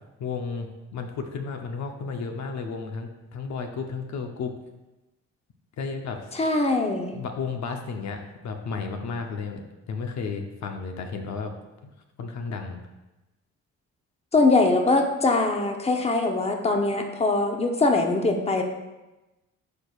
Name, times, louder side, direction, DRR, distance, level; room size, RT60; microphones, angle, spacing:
voice 1, 0.2-4.5 5.8-6.2 7.1-9.6 9.9-11.5 11.8-11.9 12.2-12.8, left 5 dB, 65° left, 4 dB, 0.8 m, -33 dB
voice 2, 6.3-7.2 14.3-18.6, left 3 dB, 20° left, 4 dB, 0.8 m, -22 dB
11.5 x 4.5 x 2.4 m, 1.0 s
cardioid pair, 90°, 30 cm